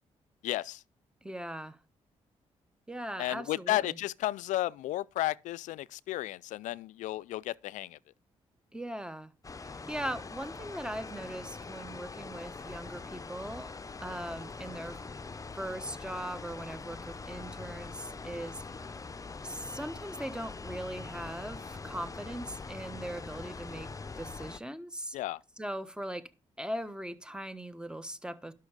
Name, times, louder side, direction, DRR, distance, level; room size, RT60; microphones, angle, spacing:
voice 1, 0.4-0.8 3.2-8.0 19.0-19.1 25.1-25.4, left 15 dB, 85° left, 0.4 m, -33 dB
voice 2, 1.2-1.8 2.9-4.0 8.7-9.3 9.6-15.0 15.5-18.6 19.4-23.9 24.2-25.2 25.6-26.3 26.6-28.5, right 1 dB, 5° right, 1.3 m, -40 dB
sound 1, 9.4-24.6, left 4 dB, 25° left, 0.7 m, -43 dB
11.5 x 6.0 x 5.0 m
supercardioid pair, 55°, 13 cm